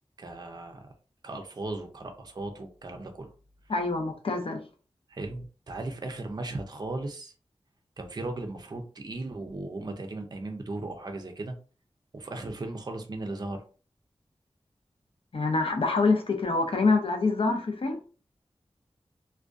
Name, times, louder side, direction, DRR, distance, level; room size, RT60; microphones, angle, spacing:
voice 1, 0.2-0.9 1.2-3.3 5.1-7.3 8.0-11.6 12.1-13.6, right 2 dB, 40° right, 4 dB, 0.4 m, -37 dB
voice 2, 3.7-4.6 15.3-18.0, left 3 dB, 60° left, 4 dB, 0.5 m, -25 dB
2.4 x 2.2 x 2.4 m, 0.38 s
wide cardioid pair, 80°, 11 cm